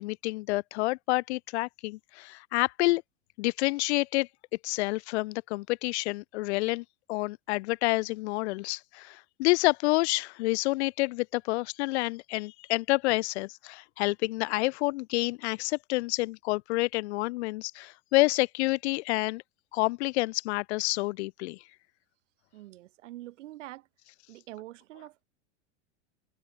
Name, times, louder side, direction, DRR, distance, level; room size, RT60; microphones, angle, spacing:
voice 1, 0.0-3.0 3.4-4.3 4.6-19.4 19.7-21.6, left 22 dB, 60° left, 0.8 m, -28 dB
voice 2, 22.5-23.9 24.3-25.2, right 16 dB, 75° right, 7.7 m, -45 dB
open air
supercardioid pair, 150°, 37 cm